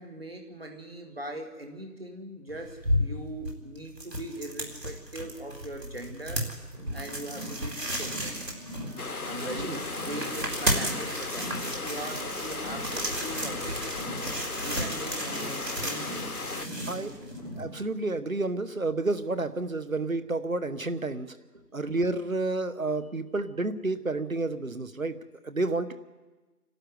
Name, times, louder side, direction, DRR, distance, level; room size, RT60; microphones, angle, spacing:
voice 1, 0.0-6.5 6.9-8.3 9.2-13.9 14.6-17.4 21.5-21.6, right 1 dB, 35° right, 3 dB, 2.3 m, -41 dB
sound 1, 2.5-17.6, equal, 85° right, 4.9 m, -34 dB
Car, 6.7-17.8, equal, 5° right, 4.2 m, -42 dB
sound 2, 9.0-16.7, left 3 dB, 65° left, 1.0 m, -36 dB
voice 2, 9.4-9.8 16.9-17.1 17.6-21.4 21.7-25.9, right 2 dB, 55° right, 13 dB, 1.4 m, -30 dB
27.0 x 12.5 x 9.5 m, 1.2 s
figure-of-eight pair, 175°, 48 cm